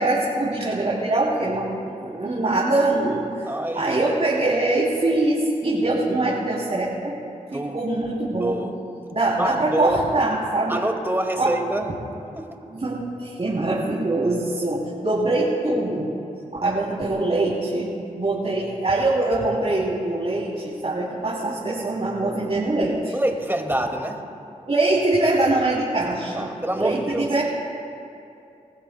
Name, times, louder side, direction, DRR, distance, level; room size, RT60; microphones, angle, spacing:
voice 1, 0.0-3.3 3.7-7.2 7.5-8.6 9.1-10.8 11.4-11.5 12.7-16.1 16.6-23.1 24.7-27.4, right 2 dB, 45° right, -6 dB, 3.1 m, -23 dB
voice 2, 3.5-4.0 7.5-7.8 8.4-8.8 9.4-10.0 10.7-11.9 12.3-12.6 23.1-24.2 26.3-27.3, right 1 dB, 15° right, 4 dB, 2.1 m, -26 dB
27.5 x 14.5 x 2.3 m, 2.7 s
cardioid pair, 40°, 15 cm